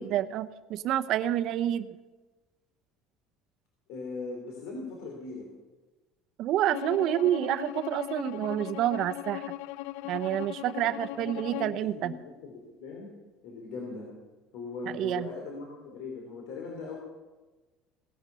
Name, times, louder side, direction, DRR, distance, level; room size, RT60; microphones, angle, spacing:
voice 1, 0.0-1.9 6.4-9.5 10.0-12.1 14.9-15.3, right 12 dB, 45° right, 12 dB, 0.8 m, -28 dB
voice 2, 3.9-5.5 10.8-11.7 12.0-13.1 13.4-14.1 14.5-17.0, left 4 dB, 60° left, 0 dB, 3.5 m, -40 dB
Bowed string instrument, 6.7-11.8, left 17 dB, 90° left, 0.5 m, -38 dB
18.0 x 11.0 x 6.9 m, 1.2 s
cardioid pair, 180°, 0 cm